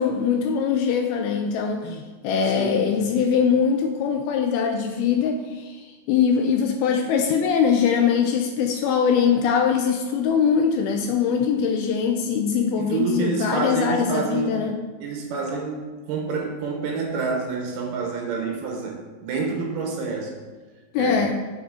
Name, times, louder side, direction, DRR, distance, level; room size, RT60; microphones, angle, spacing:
voice 1, 0.0-14.8 20.9-21.3, left 7 dB, 80° left, 4 dB, 2.2 m, -22 dB
voice 2, 2.5-2.8 12.8-14.6 15.0-20.4 20.9-21.3, right 4 dB, 75° right, 0 dB, 2.9 m, -28 dB
7.2 x 6.0 x 3.7 m, 1.3 s
omnidirectional pair, 4.7 m